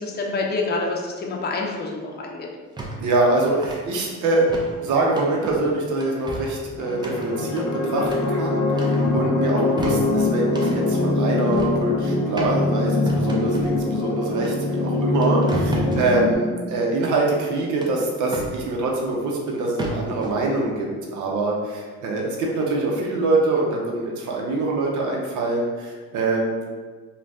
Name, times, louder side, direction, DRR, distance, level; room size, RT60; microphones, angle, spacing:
voice 1, 0.0-2.5, left 3 dB, 35° left, -1 dB, 0.6 m, -27 dB
sound 1, 2.8-3.0 3.3-3.8 4.5-4.7 5.2-5.6 6.0-6.5 7.0-8.3 8.7-9.2 9.6-10.8 11.5-11.8 12.4-12.5 13.1-13.7 14.4-14.5 14.9-16.1 17.8-18.6 19.5-19.6 19.8-20.3, right 1 dB, 15° right, 0.5 m, -31 dB
voice 2, 3.0-4.5 4.8-26.6, right 2 dB, 75° right, -1 dB, 0.7 m, -24 dB
sound 2, 6.8-16.3, left 2 dB, 85° left, 0.6 m, -23 dB
2.5 x 2.2 x 3.3 m, 1.4 s
cardioid pair, 90°, 30 cm